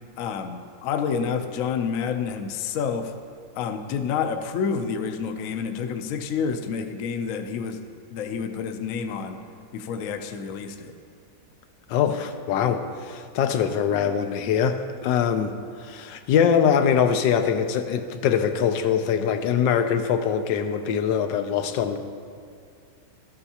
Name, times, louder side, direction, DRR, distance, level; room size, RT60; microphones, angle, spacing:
voice 1, 0.2-3.1 3.6-7.8 8.1-9.4 9.7-10.9, left 6 dB, 65° left, 6 dB, 0.8 m, -28 dB
voice 2, 11.9-15.5 15.8-22.0, left 7 dB, 90° left, 8 dB, 1.3 m, -23 dB
13.5 x 7.9 x 2.8 m, 2.3 s
omnidirectional pair, 1.9 m